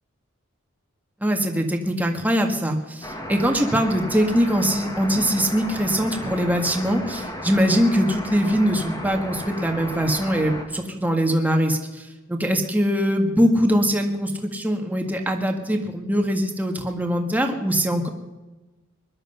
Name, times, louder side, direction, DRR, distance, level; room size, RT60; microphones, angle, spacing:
voice 1, 1.2-12.0 12.3-18.1, equal, 10° right, 3 dB, 1.7 m, -22 dB
sound 1, 3.0-10.6, equal, 20° left, 1.9 m, -34 dB
21.0 x 11.5 x 5.6 m, 1.1 s
head